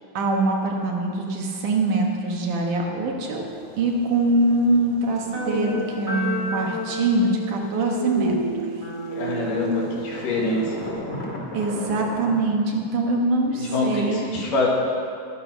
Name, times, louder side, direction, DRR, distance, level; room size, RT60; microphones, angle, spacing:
voice 1, 0.1-3.4 3.8-8.4 11.5-14.2, right 2 dB, 70° right, 0 dB, 2.9 m, -23 dB
sound 1, 3.5-8.7 9.0-12.4, left 1 dB, 25° left, 2.0 m, -38 dB
sound 2, 5.3-10.9, right 1 dB, 15° right, 1.5 m, -30 dB
voice 2, 9.2-10.9 13.5-14.7, left 3 dB, 75° left, -3 dB, 3.7 m, -25 dB
21.0 x 7.1 x 6.1 m, 2.4 s
omnidirectional pair, 3.8 m